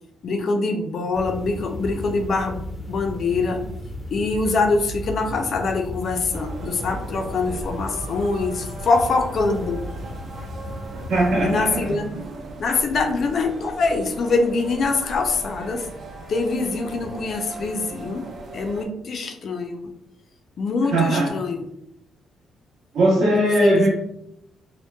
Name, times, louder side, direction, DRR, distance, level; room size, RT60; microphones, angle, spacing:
voice 1, 0.2-2.6 2.9-3.6 4.1-9.8 11.4-12.2 12.6-15.9 16.3-18.3 18.5-19.9 20.6-21.6 23.3-23.9, left 3 dB, 55° left, 4 dB, 0.4 m, -24 dB
sound 1, 1.1-11.8, left 1 dB, 5° right, 0.5 m, -35 dB
sound 2, 6.3-18.9, right 2 dB, 60° right, 0.5 m, -38 dB
voice 2, 11.1-11.9 20.9-21.3 22.9-23.9, right 1 dB, 75° right, -3 dB, 0.9 m, -19 dB
2.9 x 2.1 x 2.2 m, 0.78 s
cardioid pair, 90°, 0 cm